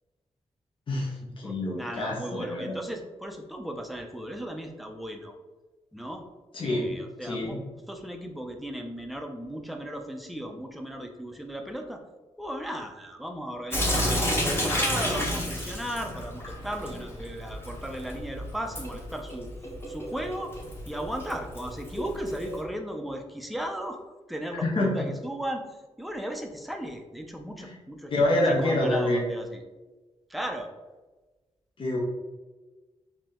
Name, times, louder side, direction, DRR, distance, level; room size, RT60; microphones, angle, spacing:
voice 1, 0.9-2.8 6.5-6.9 7.2-7.6 24.6-25.1 27.6-27.7 28.1-29.3 31.8-32.0, left 1 dB, 50° left, -3 dB, 1.0 m, -27 dB
voice 2, 1.4-5.4 5.9-6.2 6.6-7.6 7.9-12.0 12.4-19.5 19.9-20.5 20.8-24.0 24.3-28.3 28.6-29.6 30.3-30.7, equal, ahead, 3 dB, 0.6 m, -36 dB
Sink (filling or washing) / Drip, 13.7-22.6, equal, 20° left, 1.2 m, -31 dB
4.8 x 2.8 x 3.6 m, 1.2 s
cardioid pair, 95°, 11 cm